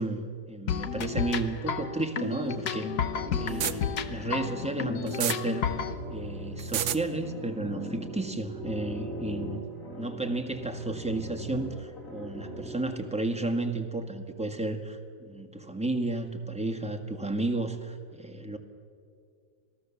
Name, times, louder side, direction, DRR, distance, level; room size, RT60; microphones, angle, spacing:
voice 1, 0.0-2.9 3.3-5.7 6.1-9.6 10.0-18.6, right 2 dB, 5° right, 3 dB, 1.5 m, -32 dB
sound 1, 0.7-5.9, left 7 dB, 75° left, 1.6 m, -32 dB
sound 2, 2.5-12.8, equal, 55° left, 4.0 m, -40 dB
Soda Stream, 3.5-3.7 5.1-5.4 6.6-7.0, right 11 dB, 85° right, 1.3 m, -28 dB
27.5 x 18.5 x 7.2 m, 2.3 s
omnidirectional pair, 1.7 m